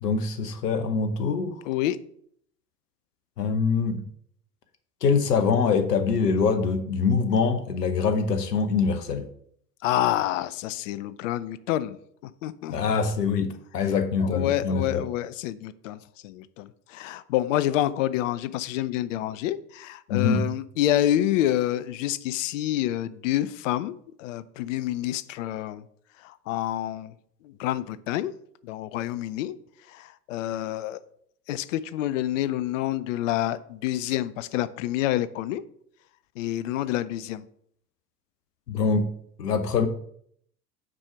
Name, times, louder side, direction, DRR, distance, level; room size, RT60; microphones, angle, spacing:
voice 1, 0.0-1.6 3.4-4.0 5.0-9.2 12.7-15.0 20.1-20.5 38.7-39.1 39.4-39.9, left 5 dB, 75° left, 8 dB, 0.9 m, -24 dB
voice 2, 1.7-2.0 9.8-12.0 12.4-12.8 14.2-16.0 16.2-25.8 26.2-27.1 27.4-28.3 28.6-29.6 29.9-31.0 31.5-35.6 36.4-37.4, left 13 dB, 50° left, 16 dB, 0.6 m, -28 dB
6.1 x 4.9 x 5.6 m, 0.66 s
figure-of-eight pair, 80°, 48 cm